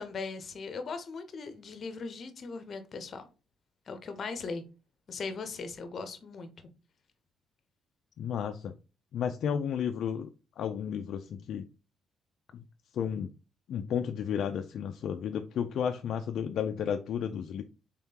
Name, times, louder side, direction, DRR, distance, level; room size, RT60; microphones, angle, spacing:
voice 1, 0.0-3.3 3.9-4.6 5.1-6.5, left 4 dB, 50° left, 0.7 m, -39 dB
voice 2, 8.2-8.7 9.1-10.3 10.6-11.7 12.5-12.6 12.9-13.3 13.7-17.6, left 8 dB, 70° left, 0.3 m, -32 dB
3.6 x 3.5 x 2.8 m
cardioid pair, 90°, 0 cm